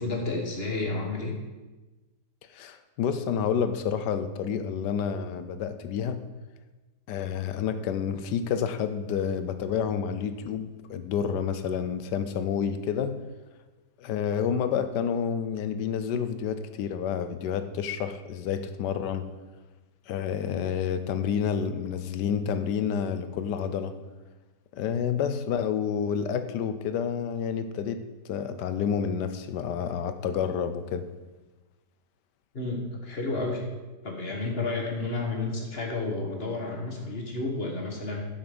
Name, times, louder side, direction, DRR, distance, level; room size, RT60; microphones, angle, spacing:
voice 1, 0.0-1.3 32.5-33.6 34.0-38.2, left 3 dB, 40° left, 0 dB, 1.6 m, -31 dB
voice 2, 2.5-6.2 7.1-13.2 14.0-19.3 20.1-23.9 24.7-28.0 28.3-31.1, left 7 dB, 90° left, 10 dB, 1.4 m, -29 dB
11.0 x 6.0 x 5.2 m, 1.2 s
omnidirectional pair, 1.8 m